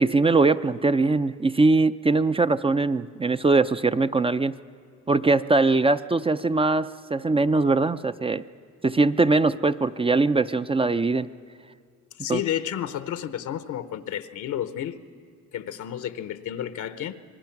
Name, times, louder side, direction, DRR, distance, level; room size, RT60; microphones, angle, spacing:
voice 1, 0.0-4.5 5.1-8.4 8.8-11.3 12.3-12.4, right 3 dB, 20° right, 11 dB, 0.4 m, -21 dB
voice 2, 12.2-15.0 15.5-17.1, left 10 dB, 80° left, 12 dB, 0.9 m, -31 dB
26.5 x 20.0 x 5.9 m, 2.2 s
cardioid pair, 90°, 30 cm